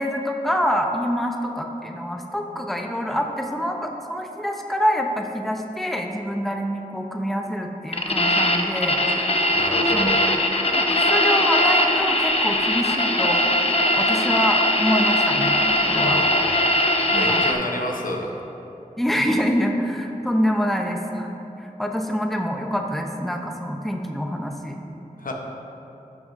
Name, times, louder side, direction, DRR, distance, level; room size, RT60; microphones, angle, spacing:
voice 1, 0.0-9.0 9.9-10.1 10.7-13.5 13.9-15.6 15.9-16.2 17.1-17.4 19.0-21.3 21.6-24.8, equal, ahead, 2 dB, 0.7 m, -26 dB
sound 1, 7.9-17.5, left 1 dB, 45° left, 0.8 m, -20 dB
voice 2, 9.5-10.2 15.9-16.6 17.1-18.3 25.2-25.3, left 1 dB, 70° left, 0 dB, 0.9 m, -29 dB
12.0 x 6.0 x 2.6 m, 2.9 s
wide cardioid pair, 45°, 14 cm